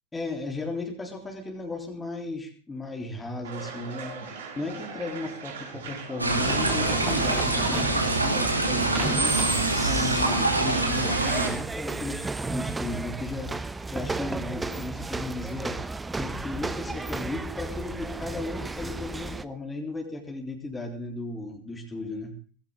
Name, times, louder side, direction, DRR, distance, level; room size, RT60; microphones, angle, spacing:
voice 1, 0.1-15.8 16.2-22.3, left 2 dB, 10° left, 2 dB, 3.6 m, -35 dB
sound 1, 3.4-8.8, right 5 dB, 60° right, 6.3 m, -41 dB
sound 2, 6.2-11.5, right 2 dB, 85° right, 3.9 m, -25 dB
sound 3, 6.4-19.4, right 3 dB, 10° right, 1.0 m, -33 dB
19.0 x 15.5 x 4.0 m, 0.40 s
figure-of-eight pair, 90°, 0 cm